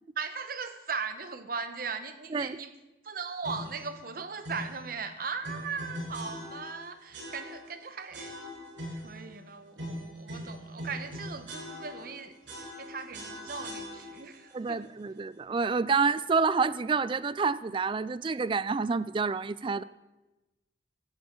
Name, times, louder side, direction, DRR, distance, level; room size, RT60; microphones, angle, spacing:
voice 1, 0.2-2.7 3.0-8.4 8.9-14.8, right 5 dB, 50° right, 9 dB, 0.9 m, -38 dB
sound 1, 3.4-3.9 4.4-4.8 5.4-6.8 7.1-7.8 8.1-9.2 9.8-12.2 12.5-14.3, equal, 85° right, 6.1 m, -41 dB
voice 2, 14.5-19.8, right 4 dB, 25° right, 17 dB, 0.3 m, -28 dB
16.0 x 12.0 x 3.9 m, 1.1 s
head